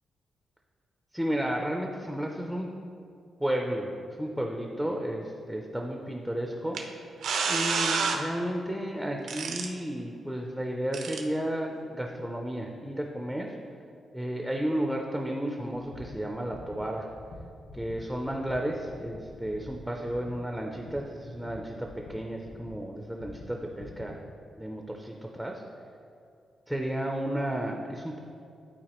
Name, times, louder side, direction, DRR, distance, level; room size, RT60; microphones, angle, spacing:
voice 1, 1.1-2.7 3.4-7.0 7.5-13.5 14.1-17.1 17.7-24.2 24.6-25.6 26.7-28.2, right 1 dB, ahead, 1 dB, 0.4 m, -33 dB
sound 1, 6.7-6.8 7.2-8.2 9.3-9.7 10.9-11.2, right 5 dB, 90° right, 0.7 m, -28 dB
sound 2, 15.7-22.8 23.2-24.1, left 2 dB, 50° left, 1.0 m, -47 dB
11.5 x 4.4 x 2.9 m, 2.5 s
wide cardioid pair, 175°, 0 cm